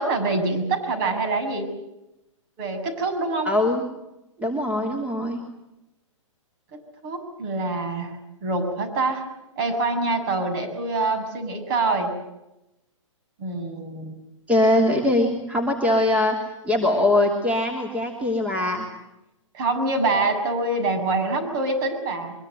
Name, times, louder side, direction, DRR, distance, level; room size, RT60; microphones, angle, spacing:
voice 1, 0.0-1.7 2.6-3.5 7.0-9.2 9.6-12.1 13.4-14.1 19.5-22.3, right 3 dB, 40° right, 7 dB, 7.2 m, -25 dB
voice 2, 3.4-3.8 4.4-5.4 14.5-16.4 16.6-18.9, left 1 dB, 10° right, 2 dB, 2.9 m, -22 dB
24.0 x 22.5 x 8.0 m, 0.92 s
figure-of-eight pair, 125°, 17 cm